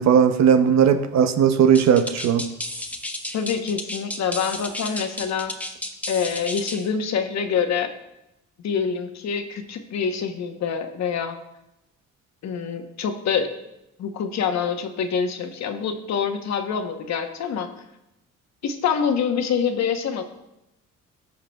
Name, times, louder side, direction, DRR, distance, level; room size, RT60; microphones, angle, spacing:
voice 1, 0.0-2.4, right 8 dB, 65° right, 0.7 m, -17 dB
sound 1, 1.7-6.9, left 1 dB, 5° left, 0.7 m, -33 dB
voice 2, 3.3-5.5 6.1-7.9 8.6-11.4 12.4-13.5 14.0-17.7 18.6-20.2, left 6 dB, 65° left, 0.9 m, -26 dB
15.5 x 5.7 x 2.3 m
cardioid pair, 90°, 30 cm